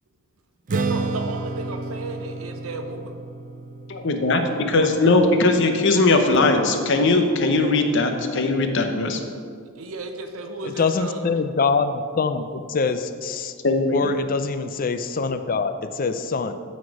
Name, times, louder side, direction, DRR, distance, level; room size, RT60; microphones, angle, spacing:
Strum, 0.7-7.0, right 3 dB, 40° right, 0.4 m, -32 dB
voice 1, 0.7-3.1 9.8-11.4, right 2 dB, 85° right, 5 dB, 0.7 m, -33 dB
voice 2, 3.9-9.2 13.6-14.1, left 2 dB, 60° left, 6 dB, 0.8 m, -19 dB
voice 3, 10.6-13.5 13.9-16.5, left 4 dB, 40° left, 9 dB, 0.4 m, -24 dB
12.5 x 4.3 x 4.8 m, 2.2 s
head